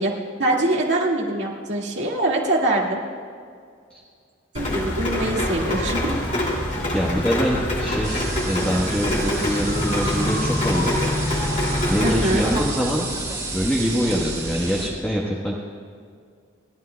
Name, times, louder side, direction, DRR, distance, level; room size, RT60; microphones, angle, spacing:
voice 1, 0.0-3.0 4.5-6.1 12.0-12.6, right 1 dB, 65° right, -2 dB, 2.1 m, -23 dB
Rain, 4.5-12.6, left 1 dB, 40° left, 2.6 m, -25 dB
voice 2, 6.9-11.0 11.9-13.1 13.5-15.6, equal, 5° left, -4 dB, 1.2 m, -24 dB
sound 1, 8.0-14.9, right 2 dB, 20° right, 2.0 m, -30 dB
29.5 x 12.0 x 2.3 m, 2.2 s
head